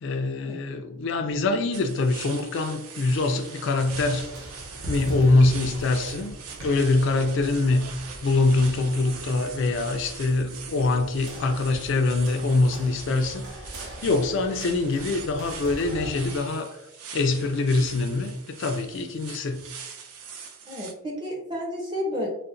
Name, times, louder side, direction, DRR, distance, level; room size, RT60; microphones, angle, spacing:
voice 1, 0.0-4.3 4.9-7.9 8.2-16.8 17.1-19.7, left 2 dB, 55° left, 0.3 m, -24 dB
sound 1, 1.7-20.9, right 6 dB, 85° right, 0.5 m, -42 dB
sound 2, 3.9-16.4, equal, 70° right, 0.8 m, -40 dB
voice 2, 20.6-22.3, left 1 dB, 20° right, 0.6 m, -31 dB
3.8 x 2.1 x 2.4 m
head